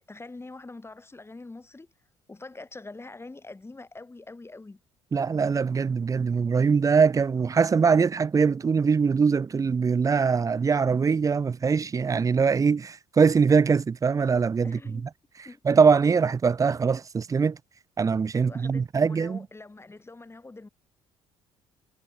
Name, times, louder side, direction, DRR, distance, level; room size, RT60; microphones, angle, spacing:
voice 1, 0.1-1.9 2.3-4.8 14.6-15.1 15.4-15.6 18.3-20.7, left 3 dB, 15° left, 1.9 m, -44 dB
voice 2, 5.1-15.0 15.6-17.6 18.0-19.5, right 5 dB, 20° right, 0.4 m, -22 dB
figure-of-eight pair, 50°, 15 cm